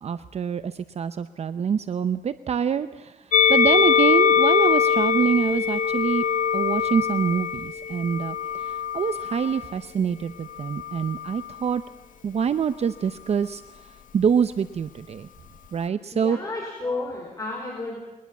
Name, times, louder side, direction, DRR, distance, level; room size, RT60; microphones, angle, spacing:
voice 1, 0.0-6.2 6.5-11.8 12.2-13.6 14.1-15.3 15.7-16.4, right 7 dB, 50° right, 12 dB, 0.7 m, -25 dB
Musical instrument, 3.3-9.7 10.6-11.6, left 7 dB, 70° left, 1.0 m, -22 dB
voice 2, 16.1-18.0, left 2 dB, 25° left, -1 dB, 4.9 m, -32 dB
22.0 x 20.0 x 7.2 m, 1.2 s
wide cardioid pair, 145°, 14 cm